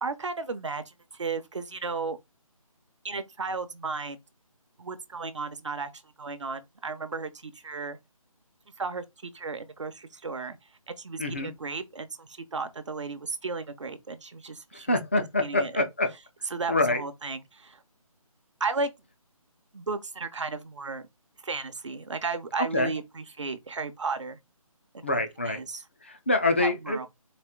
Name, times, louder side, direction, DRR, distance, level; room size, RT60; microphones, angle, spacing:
voice 1, 0.0-2.2 3.0-4.2 4.8-5.9 6.2-8.0 8.8-10.6 10.9-15.0 15.4-15.8 16.5-17.8 18.6-18.9 19.7-21.1 21.4-24.4 24.9-25.2 25.5-25.8 26.6-27.1, right 4 dB, 55° right, 0.8 m, -34 dB
voice 2, 11.2-11.5 14.7-16.1 16.7-17.0 22.7-22.9 25.0-25.6 26.0-27.1, left 2 dB, 20° left, 0.5 m, -26 dB
4.2 x 2.6 x 3.6 m
figure-of-eight pair, 170°, 19 cm